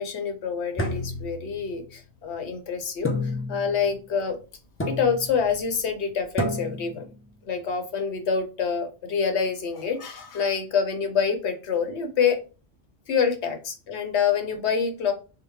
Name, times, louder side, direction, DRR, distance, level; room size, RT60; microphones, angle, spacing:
voice 1, 0.0-4.4 4.9-7.1 7.4-12.4 13.1-15.1, left 6 dB, 80° left, 5 dB, 1.1 m, -26 dB
sound 1, 0.8-2.0 3.0-3.8 4.8-5.4 6.4-7.0, left 1 dB, 20° left, 0.4 m, -30 dB
5.0 x 2.3 x 3.0 m, 0.33 s
omnidirectional pair, 1.1 m